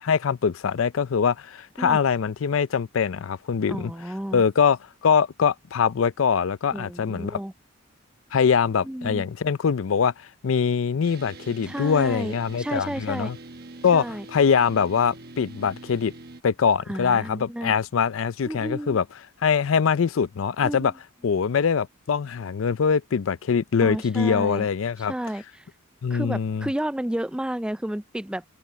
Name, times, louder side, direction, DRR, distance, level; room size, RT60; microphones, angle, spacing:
voice 1, 0.0-3.9 4.3-4.8 5.0-7.4 8.3-10.1 10.4-13.4 13.8-16.1 16.4-19.0 19.4-20.9 21.2-25.1 26.0-26.7, left 6 dB, 80° left, 0.5 m, -23 dB
voice 2, 3.7-4.4 6.7-7.5 8.8-9.3 11.6-13.3 13.9-14.3 16.9-17.7 18.5-19.0 20.6-20.9 23.8-24.7 25.0-25.7 26.1-28.4, right 1 dB, 5° right, 0.3 m, -32 dB
sound 1, 11.0-16.4, right 2 dB, 50° right, 1.1 m, -43 dB
head